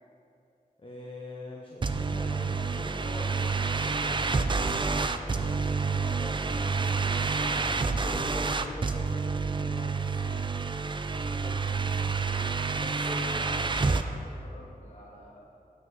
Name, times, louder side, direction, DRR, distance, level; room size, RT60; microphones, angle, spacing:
voice 1, 0.8-6.4 7.3-10.6 11.1-12.1 12.7-13.6, left 2 dB, 35° left, -2 dB, 0.8 m, -44 dB
sound 1, 1.8-14.0, right 4 dB, 35° right, 0.4 m, -28 dB
voice 2, 5.9-6.7 13.1-15.5, left 1 dB, 50° left, -5 dB, 2.2 m, -50 dB
7.6 x 5.9 x 6.2 m, 2.7 s
wide cardioid pair, 90°, 15 cm